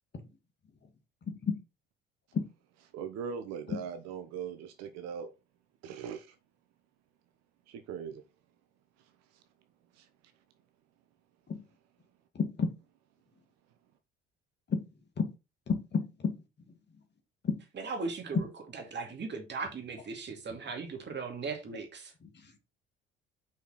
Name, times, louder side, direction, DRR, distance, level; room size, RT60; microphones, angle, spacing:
voice 1, 1.3-1.6 2.3-2.4 11.5-11.6 12.4-12.7 14.7-14.8 15.2-15.3 15.7-16.3 17.4-17.6 22.2-22.3, left 5 dB, 35° left, 2.2 m, -30 dB
voice 2, 2.9-5.3 5.8-6.3 7.7-8.2 9.9-10.1, right 7 dB, 60° right, 1.0 m, -40 dB
voice 3, 17.8-18.5 18.7-22.1, right 4 dB, 35° right, 2.4 m, -38 dB
6.0 x 5.6 x 4.0 m
figure-of-eight pair, 55°, 30 cm